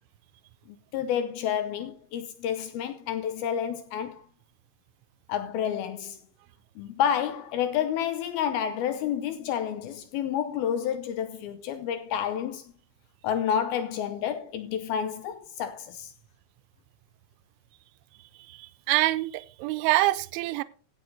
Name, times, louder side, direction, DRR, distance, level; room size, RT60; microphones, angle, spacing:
voice 1, 0.9-4.2 5.3-6.2 6.8-12.6 13.2-16.1, left 9 dB, 80° left, 2.2 m, -29 dB
voice 2, 18.5-20.6, right 18 dB, 85° right, 3.1 m, -26 dB
16.0 x 7.5 x 4.1 m
omnidirectional pair, 5.5 m